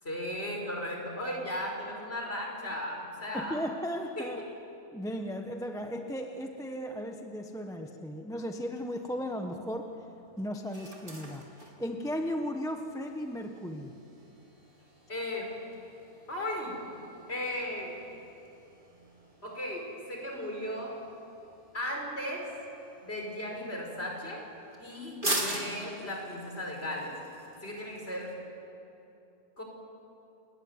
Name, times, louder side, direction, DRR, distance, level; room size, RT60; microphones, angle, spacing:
voice 1, 0.0-3.6 4.2-4.3 15.1-15.5 16.3-16.8 17.3-18.0 19.4-21.0 21.7-22.5 23.0-24.4 24.8-27.1 27.6-28.3 29.6-29.7, left 1 dB, 40° left, 1 dB, 5.4 m, -36 dB
voice 2, 3.3-4.4 4.9-9.9 10.4-13.9, equal, ahead, 4 dB, 1.1 m, -36 dB
sound 1, 8.7-28.3, right 1 dB, 35° right, 3.6 m, -43 dB
29.0 x 20.5 x 9.7 m, 2.9 s
omnidirectional pair, 1.6 m